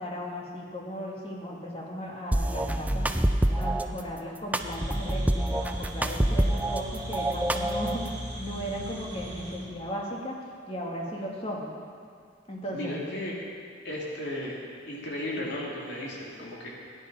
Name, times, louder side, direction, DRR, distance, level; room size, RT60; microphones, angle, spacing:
voice 1, 0.0-10.4 10.7-11.7 12.5-13.0 15.4-15.6, equal, 30° left, -3 dB, 2.2 m, -36 dB
sound 1, 2.3-3.9 4.5-6.8 7.1-8.1, right 1 dB, 10° right, 0.5 m, -26 dB
sound 2, 4.6-9.6, equal, 45° right, 3.2 m, -38 dB
voice 2, 12.7-13.3 13.8-14.6 14.9-16.7, left 1 dB, 65° left, -4 dB, 3.0 m, -35 dB
14.5 x 9.9 x 5.6 m, 2.2 s
head